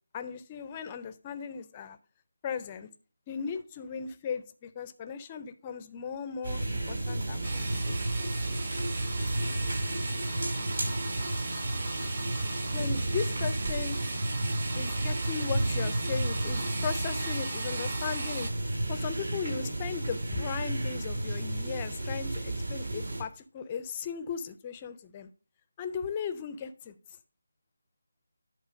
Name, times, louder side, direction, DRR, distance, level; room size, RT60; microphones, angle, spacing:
voice 1, 0.1-2.0 2.4-2.9 3.3-8.0 12.7-14.0 14.7-18.5 18.9-25.3 25.8-26.9, left 6 dB, 15° left, 0.4 m, -37 dB
sound 1, 6.4-23.2, right 1 dB, 70° right, 5.3 m, -32 dB
sound 2, 7.4-18.5, right 3 dB, 40° right, 1.1 m, -38 dB
10.5 x 3.7 x 5.0 m
figure-of-eight pair, 175°, 0 cm